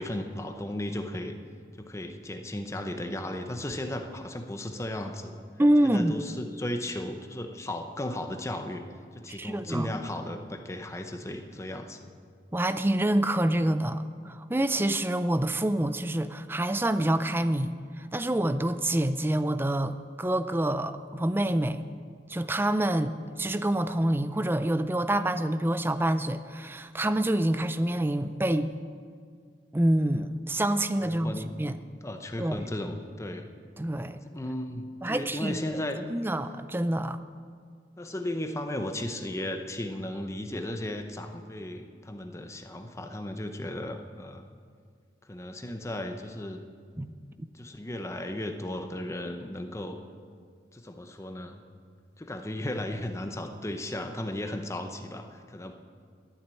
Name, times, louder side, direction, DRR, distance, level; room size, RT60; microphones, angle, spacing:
voice 1, 0.0-1.4 1.8-5.4 5.8-8.9 9.1-12.1 31.0-31.5 32.0-33.5 34.3-36.3 38.0-44.5 45.3-46.6 47.5-50.0 50.7-51.6 52.2-55.7, left 1 dB, 15° left, 6 dB, 0.8 m, -35 dB
voice 2, 5.6-6.1 9.3-9.9 12.5-21.8 22.3-28.7 29.7-31.8 32.4-32.6 33.8-34.2 35.0-35.6 36.1-37.2 47.0-47.1, right 1 dB, 10° right, 11 dB, 0.4 m, -27 dB
12.0 x 7.3 x 9.8 m, 2.1 s
head